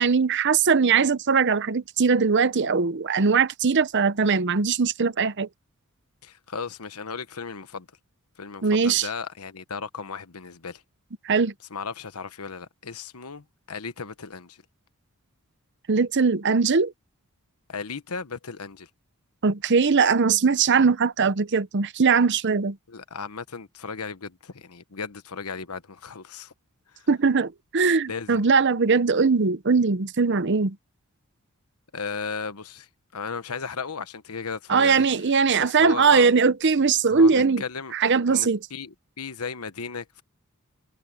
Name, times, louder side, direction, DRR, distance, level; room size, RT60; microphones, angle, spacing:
voice 1, 0.0-5.5 8.6-9.1 11.2-11.5 15.9-16.9 19.4-22.8 27.1-30.8 34.7-37.6 37.9-38.6, right 5 dB, 55° right, 0.7 m, -20 dB
voice 2, 6.2-7.9 8.4-10.8 11.7-14.6 17.7-18.9 22.9-26.5 26.9-27.1 28.1-28.4 31.9-35.1 35.6-36.3 37.1-37.9 38.3-40.2, left 5 dB, 90° left, 1.2 m, -36 dB
head